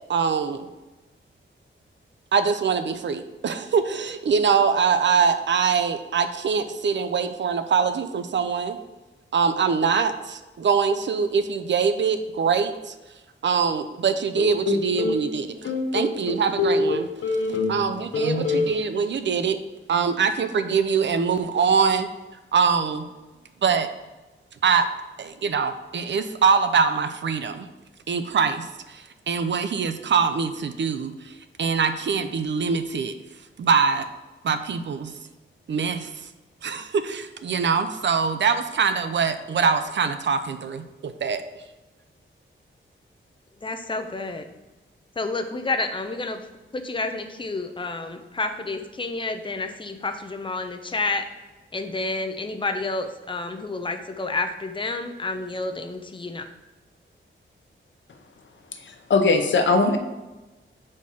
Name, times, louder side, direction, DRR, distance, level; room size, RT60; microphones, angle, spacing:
voice 1, 0.1-0.6 2.3-8.8 9.3-12.9 13.4-17.1 17.7-19.6 19.9-22.1 22.5-23.0 23.6-23.9 24.6-24.9 25.2-27.7 28.1-31.3 31.6-33.1 33.6-34.0 34.4-35.1 35.7-36.1 36.6-41.4, right 6 dB, 60° right, 10 dB, 0.5 m, -23 dB
sound 1, 14.4-15.2 15.6-17.9 18.1-18.7, left 3 dB, 85° left, 0.9 m, -24 dB
voice 2, 43.6-44.4 45.2-46.5 46.7-51.3 51.7-56.5, left 3 dB, 25° left, 6 dB, 0.5 m, -29 dB
voice 3, 58.9-60.0, left 3 dB, 65° left, 6 dB, 0.7 m, -20 dB
4.7 x 4.3 x 5.5 m, 1.1 s
wide cardioid pair, 150°, 21 cm